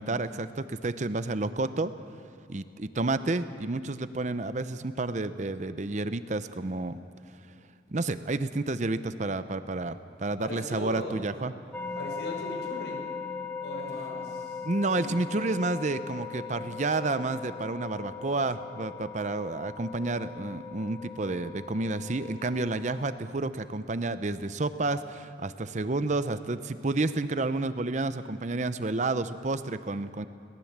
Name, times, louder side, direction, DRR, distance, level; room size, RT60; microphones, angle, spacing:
voice 1, 0.0-1.9 2.5-7.0 7.9-11.5 14.6-30.3, right 2 dB, 40° right, 12 dB, 0.7 m, -30 dB
voice 2, 10.4-11.4 11.9-13.0 13.6-14.6 14.9-15.1, equal, 75° left, 1 dB, 5.3 m, -38 dB
sound 1, 11.7-23.2, left 5 dB, 10° left, 1.2 m, -39 dB
22.0 x 18.0 x 7.4 m, 2.7 s
head